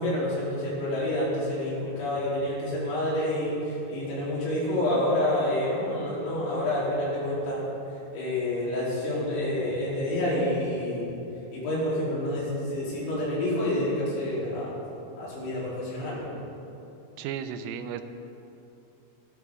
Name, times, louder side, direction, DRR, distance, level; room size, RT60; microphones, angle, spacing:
voice 1, 0.0-7.6 8.1-11.1 11.5-14.8 15.2-16.2, left 1 dB, 85° left, -8 dB, 6.7 m, -28 dB
voice 2, 17.2-18.0, right 8 dB, 85° right, 9 dB, 3.4 m, -34 dB
15.0 x 12.5 x 4.9 m, 2.9 s
omnidirectional pair, 5.8 m